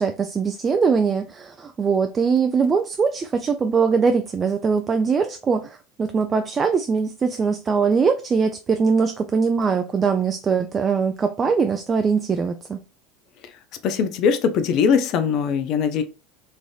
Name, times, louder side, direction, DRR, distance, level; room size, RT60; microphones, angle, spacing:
voice 1, 0.0-12.8, right 5 dB, 30° right, 0.3 m, -21 dB
voice 2, 13.8-16.0, left 6 dB, 50° left, 0.4 m, -21 dB
3.2 x 2.5 x 2.3 m
hypercardioid pair, 80°, 0 cm